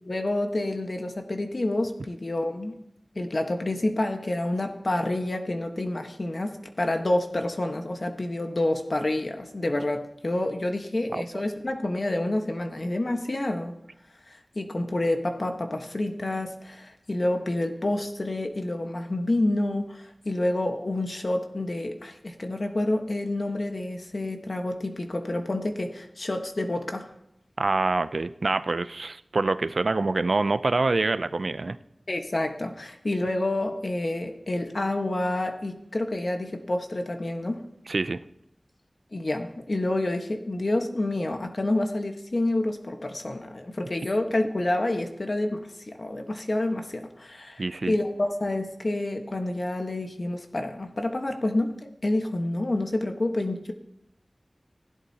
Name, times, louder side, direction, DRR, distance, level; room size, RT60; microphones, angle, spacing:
voice 1, 0.0-2.8 3.1-13.7 14.3-27.1 32.1-37.6 39.1-53.7, left 1 dB, 60° left, 4 dB, 1.3 m, -28 dB
voice 2, 27.6-31.8 37.9-38.2 47.6-48.0, right 3 dB, 80° right, 13 dB, 0.4 m, -26 dB
16.0 x 11.0 x 2.9 m, 0.80 s
wide cardioid pair, 55°, 0 cm